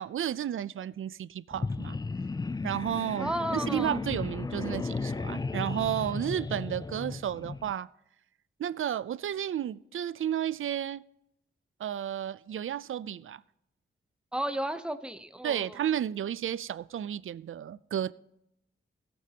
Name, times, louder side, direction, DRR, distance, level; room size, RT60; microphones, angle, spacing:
voice 1, 0.0-2.0 2.6-7.9 8.6-11.0 11.8-13.4 15.4-18.1, right 10 dB, 70° right, 0.4 m, -32 dB
sound 1, 1.5-7.7, left 3 dB, 20° left, 0.3 m, -35 dB
voice 2, 3.2-4.0 14.3-15.7, right 1 dB, 5° right, 0.7 m, -33 dB
17.5 x 8.7 x 2.9 m
wide cardioid pair, 145°, 21 cm